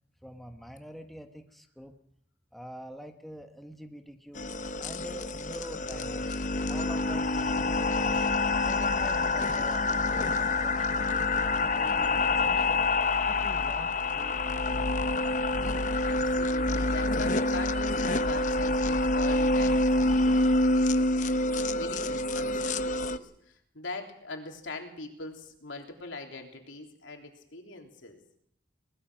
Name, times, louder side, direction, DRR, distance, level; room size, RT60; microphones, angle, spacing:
voice 1, 0.2-2.0 2.5-6.4 6.7-8.3 8.6-12.9 13.3-15.1, equal, ahead, 5 dB, 1.3 m, -46 dB
sound 1, 4.4-23.2, left 2 dB, 40° left, 0.8 m, -27 dB
Toilet flush, 7.6-14.4, right 1 dB, 40° right, 7.9 m, -59 dB
voice 2, 16.0-21.2 21.5-23.3 23.7-28.2, left 3 dB, 85° left, 3 dB, 3.6 m, -42 dB
22.0 x 20.0 x 6.3 m, 0.68 s
head